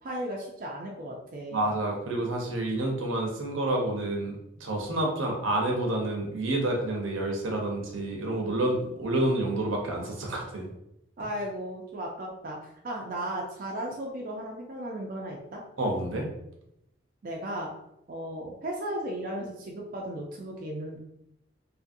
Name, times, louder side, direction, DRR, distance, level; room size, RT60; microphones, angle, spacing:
voice 1, 0.0-1.7 11.2-15.6 17.2-17.7 18.1-21.0, right 1 dB, 45° right, -2 dB, 0.4 m, -35 dB
voice 2, 1.5-10.7 15.8-16.3, right 1 dB, 80° right, 0 dB, 0.7 m, -29 dB
2.7 x 2.6 x 2.6 m, 0.82 s
head